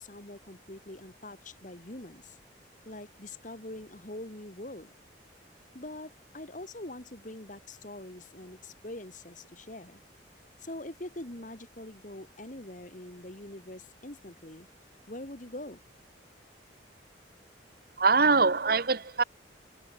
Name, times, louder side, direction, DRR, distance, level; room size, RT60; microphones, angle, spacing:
voice 1, 0.0-2.4 2.9-4.9 5.7-10.0 10.6-14.7 15.1-15.8, left 1 dB, 45° left, 2.2 m, -44 dB
voice 2, 18.0-19.2, right 4 dB, 50° right, 1.3 m, -23 dB
head